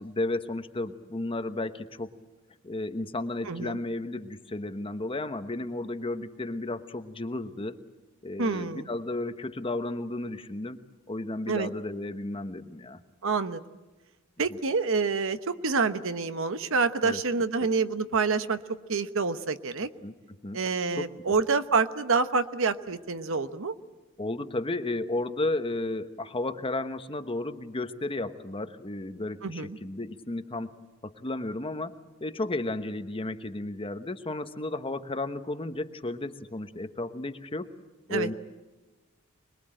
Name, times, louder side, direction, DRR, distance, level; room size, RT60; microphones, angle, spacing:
voice 1, 0.0-2.1 2.6-7.8 8.2-10.8 11.1-13.0 14.5-14.6 17.0-17.2 17.6-17.7 20.0-20.6 21.0-21.3 24.2-30.7 31.0-37.7 38.1-38.3, left 2 dB, 25° left, 9 dB, 1.1 m, -33 dB
voice 2, 3.5-3.8 8.4-8.9 11.5-11.7 13.2-13.6 14.4-18.6 18.9-19.9 20.5-23.7 29.4-29.8 38.1-38.3, right 4 dB, 65° right, 11 dB, 1.0 m, -27 dB
26.0 x 21.0 x 8.9 m, 1.2 s
head